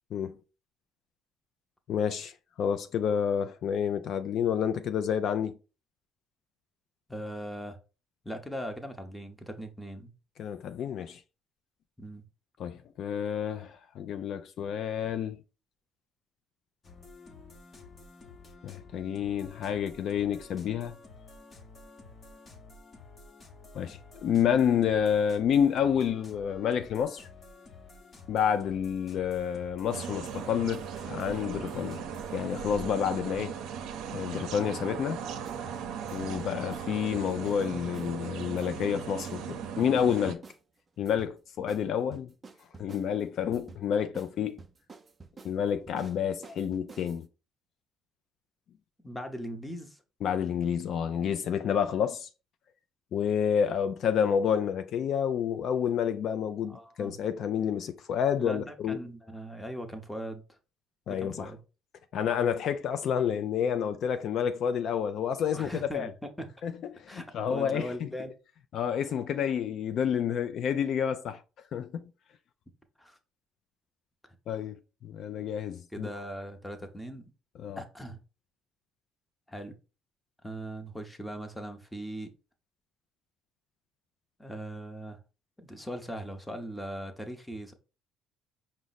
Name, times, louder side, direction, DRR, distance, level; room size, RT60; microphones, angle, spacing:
voice 1, 1.9-5.5 10.4-11.2 12.6-15.4 18.6-21.0 23.7-27.3 28.3-32.0 32.3-33.5 34.1-35.2 36.1-40.4 41.0-42.3 42.8-44.6 45.4-47.3 50.2-52.3 53.1-59.0 61.1-61.5 62.1-66.1 66.6-68.1 68.7-71.4 71.7-72.0 74.5-76.1 77.6-77.8, left 8 dB, 60° left, 0.3 m, -29 dB
voice 2, 7.1-7.8 8.2-10.1 12.0-12.2 49.0-50.0 56.7-57.2 58.4-60.6 61.1-61.6 65.5-66.1 66.4-66.5 67.1-67.2 67.5-68.3 73.0-73.2 75.9-77.3 77.8-78.2 79.5-79.7 80.4-82.3 84.4-85.2 85.6-87.7, equal, 5° left, 0.8 m, -39 dB
sound 1, 16.8-32.4, left 3 dB, 35° left, 0.8 m, -51 dB
sound 2, 29.9-40.4, right 7 dB, 70° right, 0.6 m, -38 dB
sound 3, 35.4-35.6 36.0-36.4 36.7-36.9 37.1-38.1 38.5-38.9 39.2-39.4 39.6-40.6 41.0-41.3 41.7-41.8 42.1-43.1 43.5-43.8 44.1-44.3 44.6-47.2, right 4 dB, 25° right, 0.5 m, -49 dB
5.0 x 2.0 x 4.0 m
cardioid pair, 100°, 0 cm